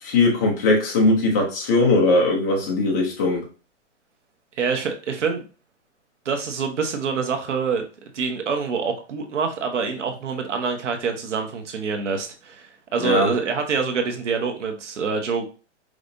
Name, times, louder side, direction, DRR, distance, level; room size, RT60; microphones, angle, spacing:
voice 1, 0.0-3.4 13.0-13.3, left 2 dB, 15° left, -1 dB, 0.6 m, -20 dB
voice 2, 4.6-5.4 6.2-7.9 8.1-12.7 12.9-15.5, right 5 dB, 80° right, 4 dB, 1.3 m, -26 dB
5.0 x 3.3 x 2.6 m, 0.36 s
hypercardioid pair, 170°, 36 cm